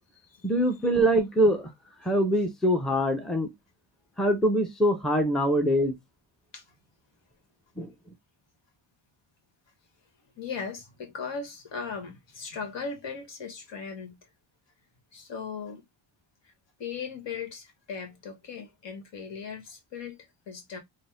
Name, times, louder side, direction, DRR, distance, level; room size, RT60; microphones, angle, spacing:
voice 1, 0.4-1.7 2.0-3.5 4.2-5.9 7.8-7.9, equal, ahead, 0.8 m, -24 dB
voice 2, 10.4-14.2 15.1-15.8 16.8-20.8, left 5 dB, 60° left, 1.6 m, -38 dB
4.0 x 2.2 x 3.5 m
cardioid pair, 75°, 50 cm